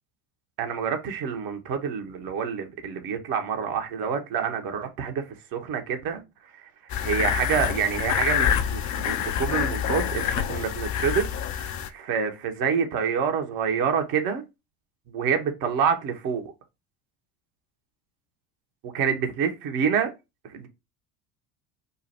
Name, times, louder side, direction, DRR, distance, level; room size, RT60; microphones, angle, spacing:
voice 1, 0.6-14.4 15.1-16.5 18.8-20.1 20.4-20.7, right 7 dB, 55° right, 1.3 m, -27 dB
sound 1, 6.9-11.9, left 9 dB, 45° left, 0.7 m, -26 dB
3.9 x 2.3 x 4.3 m
hypercardioid pair, 70°, 41 cm